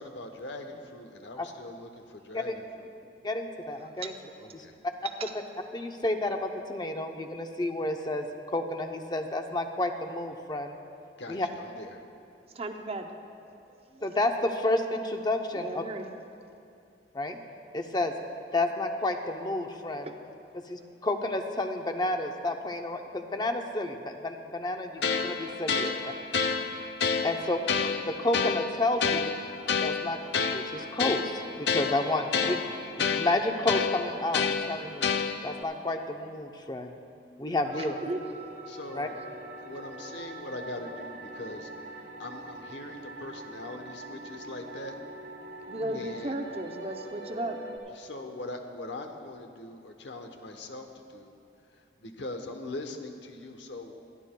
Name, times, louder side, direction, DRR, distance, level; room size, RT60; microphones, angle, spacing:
voice 1, 0.0-2.9 4.4-4.7 11.2-12.0 37.8-38.0 38.7-39.2 39.6-45.0 45.9-46.4 47.9-51.3 51.7-54.0, left 2 dB, 85° left, 5 dB, 1.0 m, -42 dB
voice 2, 3.2-4.1 4.5-4.6 5.2-5.4 5.7-10.8 11.3-11.5 14.0-15.8 17.1-17.4 17.7-18.1 18.5-20.1 20.7-26.1 27.2-27.6 28.1-29.3 29.8-32.6 33.0-35.1 35.4-37.0 37.4-37.9 38.9-39.1 45.8-46.0, left 2 dB, 25° left, 5 dB, 0.6 m, -30 dB
voice 3, 12.6-13.1 14.0-14.2 15.5-16.1 20.1-20.2 25.9-26.0 37.8-38.2 45.7-47.6, right 2 dB, 35° right, 5 dB, 0.6 m, -35 dB
sound 1, 25.0-35.6, left 5 dB, 70° left, 0.5 m, -29 dB
sound 2, 37.6-47.8, right 2 dB, 65° right, 1.5 m, -43 dB
24.0 x 11.0 x 2.2 m, 2.5 s
head